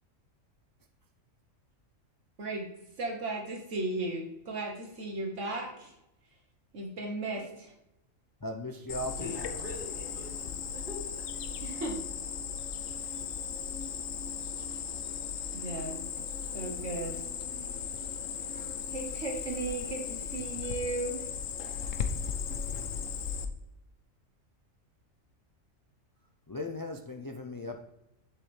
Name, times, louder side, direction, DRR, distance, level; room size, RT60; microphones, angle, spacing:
voice 1, 2.4-2.7 3.0-5.9 6.7-7.7 11.6-12.0 15.5-16.0 16.5-17.2 18.9-21.3, right 2 dB, 65° right, 1.5 m, -36 dB
voice 2, 8.4-9.5 26.5-27.8, left 1 dB, 30° left, 0.3 m, -37 dB
Cricket, 8.9-23.4, left 7 dB, 75° left, 1.1 m, -37 dB
voice 3, 9.2-11.4, left 1 dB, 40° right, 3.0 m, -43 dB
7.6 x 7.3 x 3.3 m
omnidirectional pair, 1.4 m